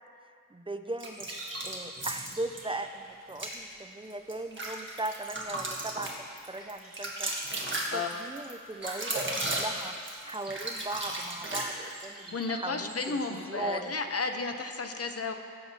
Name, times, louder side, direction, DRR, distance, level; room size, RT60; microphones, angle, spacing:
voice 1, 0.5-1.3 1.6-7.3 7.9-10.0 10.2-13.2 13.5-13.9, right 2 dB, 15° right, 7 dB, 0.4 m, -38 dB
sound 1, 1.0-2.6 3.3-3.6 4.1-12.1, right 1 dB, 35° right, 1.5 m, -35 dB
sound 2, 1.1-14.8, right 1 dB, 85° right, 2.7 m, -50 dB
voice 2, 12.3-15.3, left 4 dB, 45° left, 6 dB, 0.8 m, -33 dB
17.0 x 7.9 x 2.8 m, 2.3 s
wide cardioid pair, 80°, 33 cm